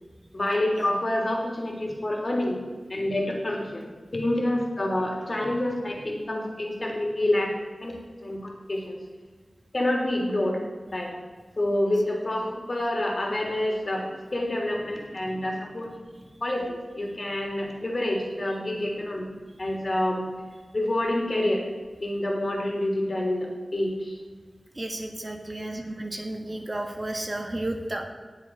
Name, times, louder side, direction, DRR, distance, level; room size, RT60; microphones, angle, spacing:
voice 1, 0.3-2.6 2.9-3.8 4.1-7.5 7.8-7.9 8.2-9.0 9.7-10.6 10.9-11.1 11.6-15.9 16.4-19.3 19.6-20.2 20.7-21.6 22.0-24.2 25.6-25.9, left 1 dB, 50° left, 0 dB, 3.4 m, -27 dB
voice 2, 24.7-28.0, right 1 dB, 35° right, 3 dB, 1.6 m, -32 dB
19.5 x 7.4 x 4.8 m, 1.4 s
wide cardioid pair, 80°, 0 cm